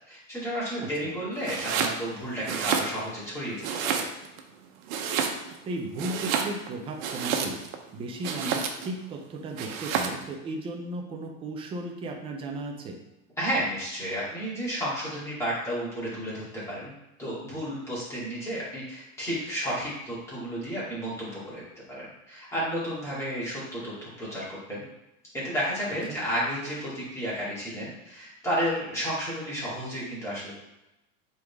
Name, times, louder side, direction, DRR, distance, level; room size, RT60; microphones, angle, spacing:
voice 1, 0.1-4.0 13.4-16.9 17.2-24.8 25.3-30.5, equal, 5° left, -9 dB, 2.3 m, -32 dB
voice 2, 0.8-1.1 5.6-7.6 7.9-13.0 26.1-26.2, right 2 dB, 15° right, 2 dB, 0.5 m, -35 dB
Domestic sounds home sounds, 1.4-2.0 2.4-3.3 3.6-4.4 4.9-5.6 5.9-7.8 8.2-8.9 9.6-10.2, right 7 dB, 90° right, 1.0 m, -29 dB
8.1 x 3.9 x 3.5 m, 0.93 s
supercardioid pair, 175°, 40 cm